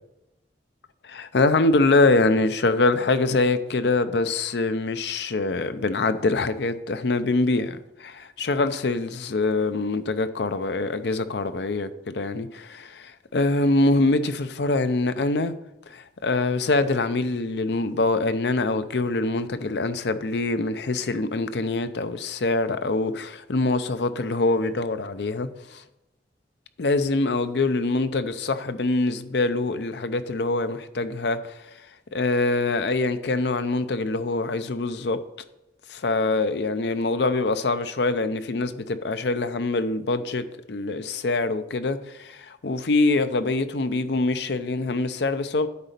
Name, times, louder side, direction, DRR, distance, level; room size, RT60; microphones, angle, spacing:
voice 1, 1.0-15.5 15.9-25.8 26.8-31.6 32.1-35.2 35.9-45.7, left 3 dB, 70° left, 0.6 m, -24 dB
9.6 x 4.1 x 6.7 m
head